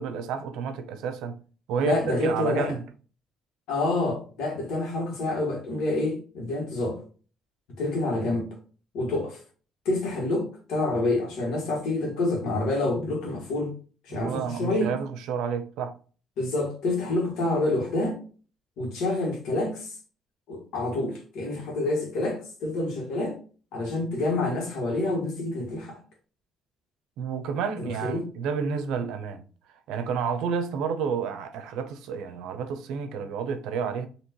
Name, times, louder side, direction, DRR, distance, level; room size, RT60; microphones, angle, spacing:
voice 1, 0.0-1.4 1.7-2.8 14.1-15.9 27.2-29.4 29.9-34.1, right 6 dB, 90° right, 0.7 m, -30 dB
voice 2, 1.8-2.8 3.7-7.0 7.8-8.6 8.9-9.4 9.9-13.7 14.0-15.0 16.4-18.2 18.8-20.0 20.5-23.4 23.7-26.0 27.8-28.3, left 2 dB, 80° left, 1.8 m, -27 dB
4.4 x 3.0 x 3.0 m
cardioid pair, 150°, 0 cm